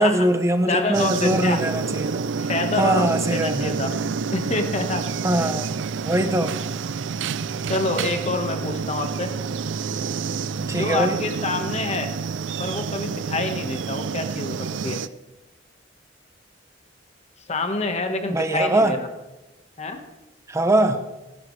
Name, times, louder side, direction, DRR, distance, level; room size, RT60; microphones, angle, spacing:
voice 1, 0.0-2.3 2.8-3.8 5.2-5.7 6.0-6.6 10.7-11.2 18.3-19.0 20.5-21.0, right 1 dB, 15° right, 8 dB, 0.7 m, -22 dB
voice 2, 0.7-1.6 2.4-3.9 4.3-5.1 5.3-5.5 7.7-9.3 10.6-12.1 12.6-15.0 17.5-19.1 19.8-20.0, left 2 dB, 35° left, 6 dB, 1.4 m, -27 dB
sound 1, 0.9-15.1, right 5 dB, 75° right, 0.5 m, -28 dB
17.5 x 15.5 x 3.3 m, 1.0 s
head